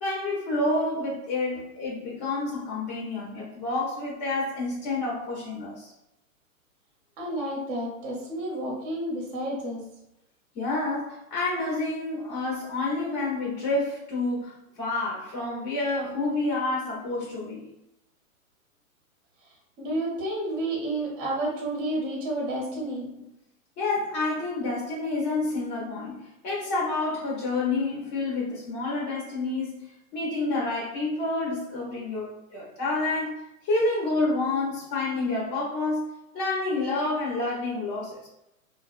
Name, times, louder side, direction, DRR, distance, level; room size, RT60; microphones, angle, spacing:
voice 1, 0.0-5.9 10.5-17.6 22.7-22.9 23.8-38.3, left 2 dB, 30° left, -5 dB, 0.7 m, -29 dB
voice 2, 7.2-9.8 19.8-23.1, right 1 dB, 20° right, -3 dB, 0.7 m, -30 dB
2.8 x 2.1 x 2.4 m, 0.86 s
hypercardioid pair, 135°, 42 cm